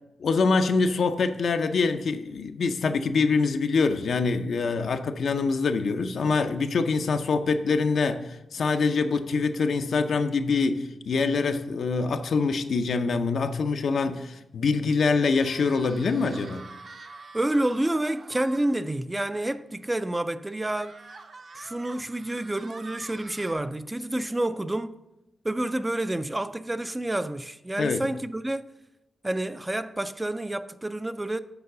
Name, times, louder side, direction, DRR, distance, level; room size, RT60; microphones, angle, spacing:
voice 1, 0.2-16.6 27.8-28.1, left 4 dB, 70° left, 0.6 m, -25 dB
sound 1, 15.4-18.8 19.3-19.4 19.7-19.8 20.7-23.5, right 3 dB, 50° right, 0.7 m, -46 dB
voice 2, 17.3-21.0 21.6-25.0 25.4-28.7 29.2-31.4, right 1 dB, 15° right, 0.3 m, -29 dB
6.9 x 4.6 x 6.6 m
cardioid pair, 80°, 0 cm